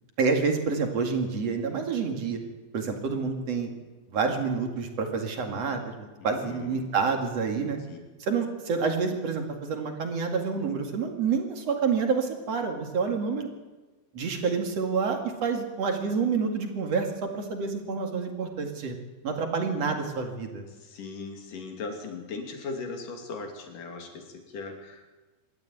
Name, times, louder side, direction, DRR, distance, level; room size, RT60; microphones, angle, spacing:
voice 1, 0.2-2.4 2.7-3.7 4.1-7.8 8.2-13.5 14.1-19.0 19.2-20.6, right 5 dB, 45° right, 3 dB, 2.6 m, -28 dB
voice 2, 6.2-6.8 7.9-8.0 20.8-25.1, left 4 dB, 50° left, 3 dB, 4.0 m, -38 dB
25.5 x 13.0 x 9.1 m, 1.2 s
omnidirectional pair, 5.3 m